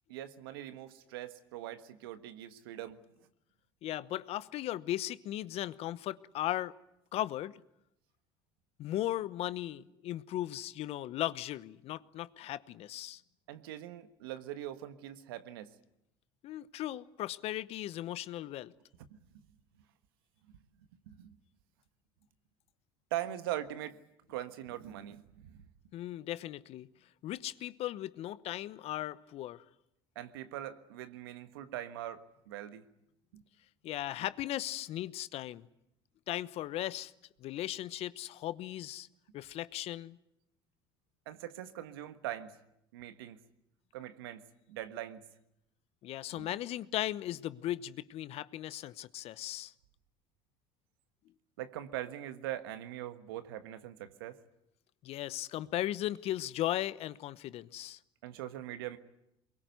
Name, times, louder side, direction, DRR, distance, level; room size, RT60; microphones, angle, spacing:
voice 1, 0.1-3.0 13.5-15.7 19.1-19.2 21.1-21.3 23.1-24.0 24.3-25.6 30.1-32.8 33.3-33.4 41.3-42.5 42.9-43.4 43.9-44.4 44.7-45.2 46.4-46.5 51.6-54.4 58.2-59.0, right 13 dB, 80° right, 1.4 m, -41 dB
voice 2, 3.8-6.7 7.1-7.6 8.8-13.2 16.4-18.7 25.9-26.9 27.2-29.6 33.8-35.7 36.3-37.1 37.4-39.1 39.3-40.2 46.0-49.7 55.0-58.0, left 14 dB, 55° left, 0.9 m, -37 dB
23.5 x 22.0 x 9.4 m
hypercardioid pair, 70°, 12 cm